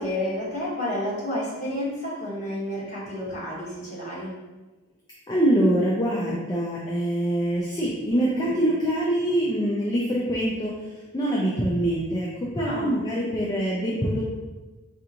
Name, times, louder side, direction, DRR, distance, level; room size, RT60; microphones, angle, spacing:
voice 1, 0.0-4.3 8.3-8.6 12.6-12.9, left 1 dB, 35° left, -6 dB, 1.2 m, -30 dB
voice 2, 5.3-14.2, right 1 dB, 20° left, -5 dB, 0.5 m, -24 dB
4.7 x 2.5 x 2.9 m, 1.2 s
head